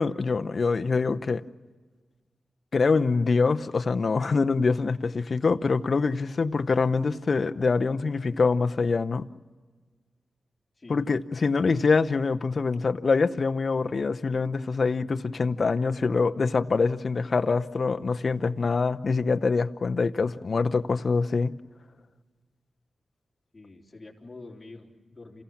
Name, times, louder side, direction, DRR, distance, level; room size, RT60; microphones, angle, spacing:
voice 1, 0.0-1.4 2.7-9.3 10.9-21.5, left 4 dB, 55° left, 0.7 m, -25 dB
voice 2, 23.5-25.4, left 3 dB, 30° left, 4.0 m, -46 dB
28.5 x 16.0 x 7.3 m
cardioid pair, 60°, 0 cm